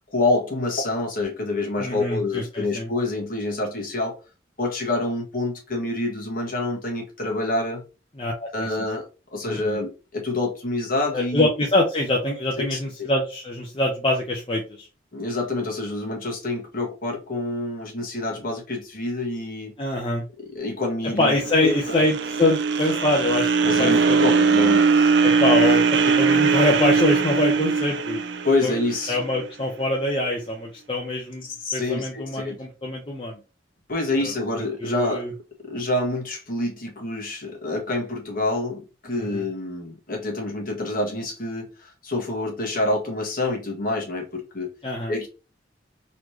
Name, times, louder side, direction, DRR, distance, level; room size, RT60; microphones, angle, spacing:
voice 1, 0.1-4.2 4.6-7.8 8.5-9.1 9.3-11.5 12.6-12.8 15.1-19.7 20.4-21.3 21.6-21.7 23.6-25.1 28.4-29.2 31.4-32.5 33.9-35.2 35.6-44.7 45.1-45.3, left 2 dB, 50° left, 1.7 m, -27 dB
voice 2, 1.8-2.9 8.2-8.9 9.5-9.8 11.1-14.9 19.8-20.2 21.2-24.2 25.2-28.2 28.6-28.7 29.1-31.5 31.7-33.4 34.2-34.3 34.8-35.3 39.1-39.4 44.8-45.1, left 2 dB, 30° left, 0.8 m, -24 dB
sound 1, 21.2-29.4, right 5 dB, 70° right, 0.5 m, -20 dB
4.1 x 3.2 x 2.8 m
head